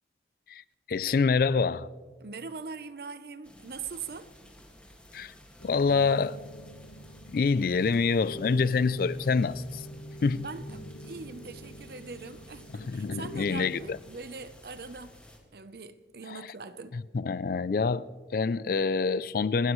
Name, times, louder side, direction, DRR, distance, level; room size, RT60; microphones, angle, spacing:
voice 1, 0.9-1.9 5.1-5.3 5.6-6.4 7.3-9.9 10.2-10.5 12.7-14.0 16.3-16.4 16.9-19.7, left 4 dB, 50° left, 0.3 m, -26 dB
voice 2, 2.2-4.3 10.3-15.2 15.5-17.0, right 4 dB, 55° right, 0.7 m, -42 dB
sound 1, 3.4-15.4, left 1 dB, 5° left, 1.9 m, -54 dB
sound 2, 5.6-13.9, equal, 85° left, 1.1 m, -45 dB
28.5 x 12.5 x 3.1 m
head